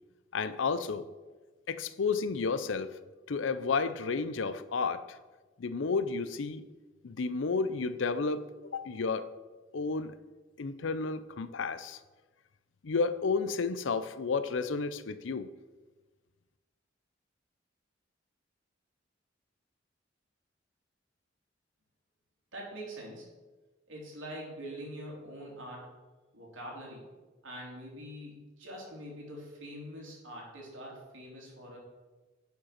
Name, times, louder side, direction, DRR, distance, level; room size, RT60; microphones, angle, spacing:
voice 1, 0.3-1.1 1.7-3.0 3.3-5.2 5.6-6.6 7.0-9.3 9.7-10.1 10.6-12.0 12.8-15.5, left 4 dB, 80° left, 14 dB, 0.5 m, -31 dB
voice 2, 22.5-23.3 23.9-25.9 26.3-27.1 27.4-31.8, equal, 85° right, -3 dB, 3.1 m, -44 dB
10.5 x 5.3 x 5.8 m, 1.2 s
head